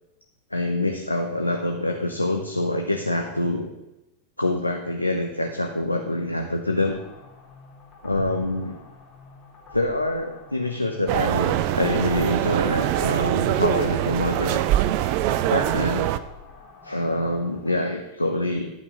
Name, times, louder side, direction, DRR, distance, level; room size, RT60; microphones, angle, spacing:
voice 1, 0.5-3.7 4.4-7.0 8.0-8.8 9.7-14.6 15.5-16.1 16.8-18.7, left 1 dB, 85° left, 3 dB, 0.8 m, -25 dB
sound 1, 6.8-17.8, left 4 dB, 35° left, 2.4 m, -48 dB
sound 2, 11.1-16.2, right 13 dB, 45° right, 0.5 m, -23 dB
11.0 x 5.7 x 6.3 m, 0.94 s
figure-of-eight pair, 90°, 0 cm